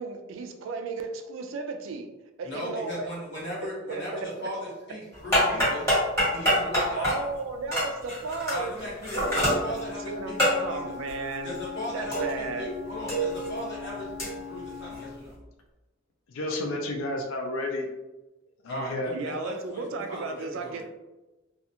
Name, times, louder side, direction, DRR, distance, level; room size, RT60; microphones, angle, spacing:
voice 1, 0.0-2.1 2.4-3.1 3.9-4.5 7.0-8.7 9.1-9.6 9.9-11.5 11.9-12.7 19.1-20.8, right 3 dB, 70° right, 5 dB, 0.3 m, -34 dB
voice 2, 2.4-5.9 6.3-7.2 8.5-10.9 11.4-15.3 18.7-20.8, left 1 dB, 60° left, -6 dB, 1.2 m, -37 dB
sound 1, 5.1-12.7 12.9-15.3, equal, 15° left, 1.5 m, -27 dB
Wind instrument woodwind instrument, 9.2-15.2, left 5 dB, 15° right, 0.6 m, -40 dB
voice 3, 16.3-17.9 18.6-19.1, left 1 dB, 90° left, 2 dB, 0.4 m, -31 dB
2.4 x 2.3 x 2.7 m, 1.1 s
head